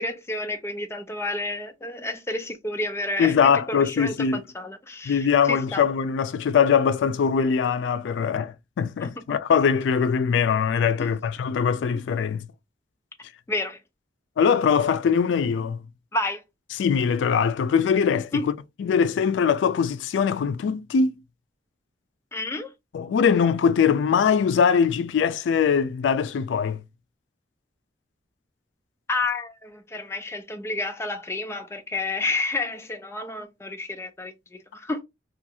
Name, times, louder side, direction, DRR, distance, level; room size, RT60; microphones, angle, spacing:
voice 1, 0.0-5.8 9.0-9.2 11.0-11.1 11.9-12.0 13.5-13.8 16.1-16.4 18.3-18.5 22.3-22.7 29.1-35.0, left 2 dB, 15° left, 0.4 m, -30 dB
voice 2, 3.2-4.4 5.1-12.5 14.4-15.8 16.8-21.1 22.9-26.8, left 6 dB, 90° left, 0.3 m, -22 dB
2.4 x 2.3 x 2.7 m
head